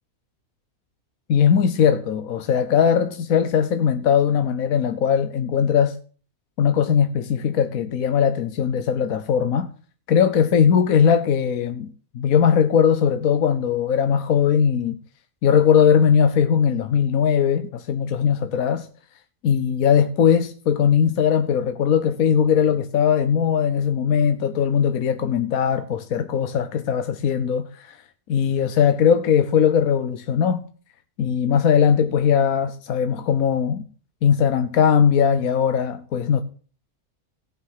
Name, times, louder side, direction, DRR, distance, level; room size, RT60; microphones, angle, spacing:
voice 1, 1.3-6.0 6.6-9.7 10.1-15.0 15.4-18.9 19.4-28.0 28.3-30.6 31.2-33.8 34.2-36.4, left 7 dB, 75° left, 1.3 m, -19 dB
17.5 x 6.1 x 5.7 m
omnidirectional pair, 1.5 m